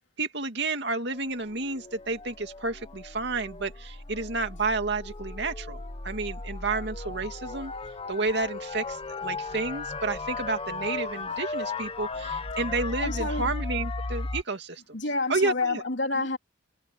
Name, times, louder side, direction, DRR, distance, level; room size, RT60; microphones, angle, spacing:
voice 1, 0.2-7.7 8.1-14.8 15.3-15.8, right 3 dB, 65° right, 2.5 m, -31 dB
sound 1, 1.1-14.4, left 3 dB, 30° left, 1.0 m, -36 dB
voice 2, 13.0-13.5 14.9-16.4, left 3 dB, 75° left, 3.1 m, -28 dB
head